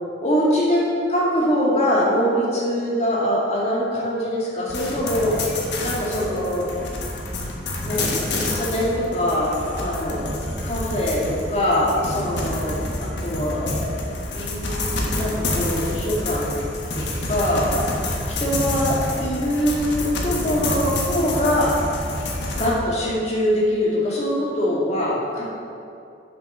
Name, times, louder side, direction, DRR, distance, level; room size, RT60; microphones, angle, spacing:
voice 1, 0.2-0.8 1.1-5.4 5.8-6.7 7.8-14.0 14.3-16.6 16.9-17.7 18.4-21.7 22.5-25.4, equal, 35° left, -5 dB, 2.1 m, -23 dB
sound 1, 4.7-22.7, left 2 dB, 80° left, 1.3 m, -28 dB
7.3 x 6.9 x 5.6 m, 2.6 s
head